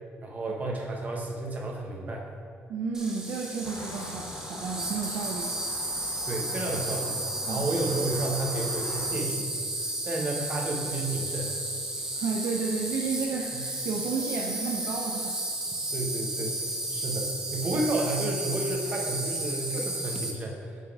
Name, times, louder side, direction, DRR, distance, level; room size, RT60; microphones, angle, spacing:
voice 1, 0.2-2.2 6.2-7.1 7.5-9.5 10.0-11.6 13.5-13.6 15.9-16.6 16.9-20.7, right 2 dB, 35° right, -1 dB, 1.0 m, -31 dB
voice 2, 2.7-5.6 7.5-7.7 12.2-15.4, right 5 dB, 70° right, -1 dB, 0.5 m, -32 dB
Insect, 2.9-20.3, right 1 dB, 15° right, 0.6 m, -33 dB
sound 1, 3.6-9.1, left 4 dB, 55° left, 0.5 m, -44 dB
5.5 x 4.0 x 4.7 m, 2.2 s
cardioid pair, 125°, 5 cm